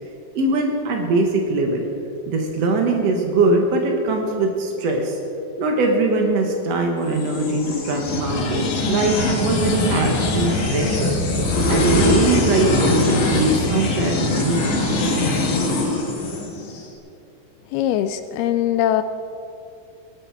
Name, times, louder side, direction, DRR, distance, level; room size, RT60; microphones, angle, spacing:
voice 1, 0.3-1.9 2.3-5.2 5.6-11.2 11.7-15.1, right 2 dB, 85° right, 2 dB, 1.4 m, -21 dB
sound 1, 7.1-16.8, left 2 dB, 55° left, 3.1 m, -22 dB
voice 2, 17.7-19.0, left 12 dB, 85° left, 10 dB, 2.2 m, -21 dB
20.5 x 11.5 x 4.7 m, 2.7 s
omnidirectional pair, 4.9 m